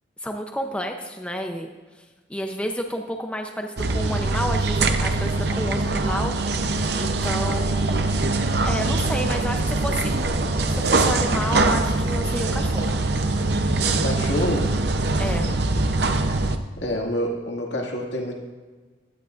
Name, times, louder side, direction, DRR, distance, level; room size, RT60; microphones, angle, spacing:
voice 1, 0.2-1.7 2.0-2.1 2.3-6.4 7.0-8.2 8.6-13.0 15.2-15.5, equal, 5° left, 3 dB, 0.6 m, -30 dB
sound 1, 3.8-16.6, right 2 dB, 60° right, 0.7 m, -23 dB
voice 2, 13.8-14.8 16.8-18.3, equal, 75° left, 0 dB, 2.1 m, -27 dB
17.0 x 12.0 x 2.5 m, 1.3 s
head